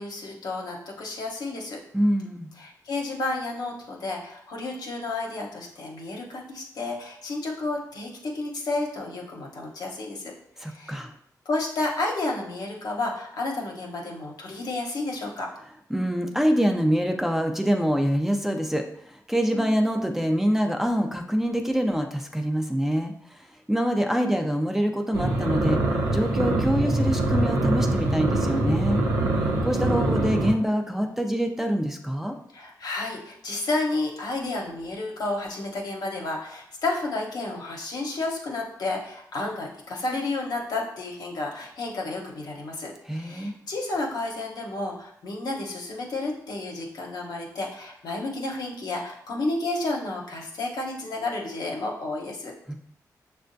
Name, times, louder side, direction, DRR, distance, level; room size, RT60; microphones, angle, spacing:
voice 1, 0.0-1.8 2.6-10.3 10.6-11.0 11.5-15.5 19.5-19.8 32.5-52.5, left 2 dB, 75° left, -1 dB, 0.9 m, -31 dB
voice 2, 1.9-2.5 10.6-11.1 15.9-25.8 26.1-29.0 29.6-32.4 43.1-43.5 52.7-52.8, equal, 5° right, 3 dB, 0.5 m, -25 dB
sound 1, 25.1-30.5, right 2 dB, 90° right, 0.7 m, -24 dB
6.3 x 2.3 x 2.6 m, 0.69 s
cardioid pair, 55°, 7 cm